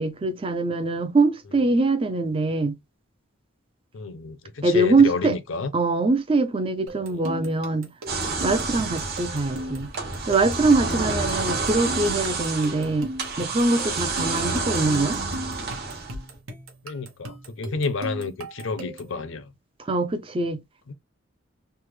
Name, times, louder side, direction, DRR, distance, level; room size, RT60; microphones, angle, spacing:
voice 1, 0.0-2.7 4.6-5.4 5.7-7.9 8.4-9.9 10.3-15.2 19.8-20.6, right 3 dB, 25° right, 0.4 m, -23 dB
voice 2, 3.9-5.7 7.0-7.5 9.5-9.8 16.8-19.5 20.9-21.0, left 4 dB, 65° left, 0.5 m, -31 dB
sound 1, 6.9-19.2, right 1 dB, 80° right, 0.9 m, -39 dB
sound 2, 8.1-16.4, right 3 dB, 45° right, 1.1 m, -29 dB
3.3 x 2.0 x 3.2 m
head